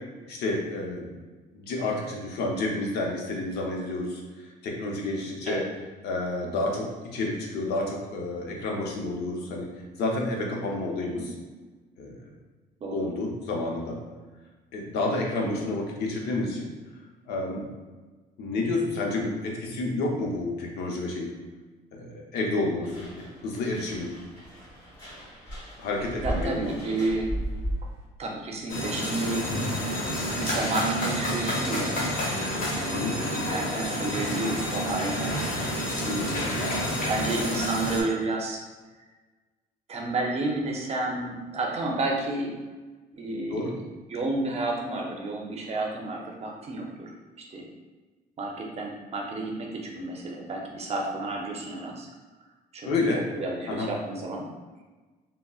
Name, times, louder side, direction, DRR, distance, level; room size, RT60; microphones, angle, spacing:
voice 1, 0.3-1.1 1.5-4.2 4.6-5.6 6.0-9.7 10.0-11.2 12.0-12.2 12.9-14.0 14.7-16.7 17.3-17.7 18.4-21.4 21.9-23.1 23.4-24.1 25.8-26.8 32.9-33.1 36.1-36.3 43.2-43.7 52.8-53.2 53.7-53.9, left 2 dB, 75° left, 0 dB, 0.7 m, -30 dB
sound 1, 22.8-28.0, right 1 dB, 20° left, 1.4 m, -36 dB
voice 2, 26.2-27.3 28.2-29.5 30.4-32.0 32.7-35.7 36.0-36.5 36.8-38.6 39.9-42.5 43.1-43.8 44.1-47.7 48.4-52.1 52.7-53.0 53.3-54.5, right 2 dB, 40° right, 0 dB, 0.6 m, -31 dB
sound 2, 28.7-38.0, equal, 55° left, 1.1 m, -29 dB
3.7 x 2.0 x 2.3 m, 1.3 s
cardioid pair, 110°, 17 cm